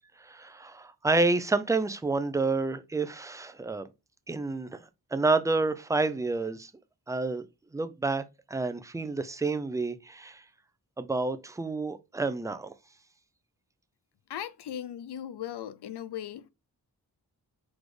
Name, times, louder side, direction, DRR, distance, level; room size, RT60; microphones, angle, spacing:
voice 1, 0.2-3.9 4.3-4.8 5.1-6.7 7.1-7.4 7.7-10.4 11.0-12.7, right 3 dB, 10° right, 0.4 m, -29 dB
voice 2, 14.3-16.5, left 10 dB, 90° left, 0.6 m, -38 dB
4.9 x 4.2 x 4.7 m
wide cardioid pair, 165°, 39 cm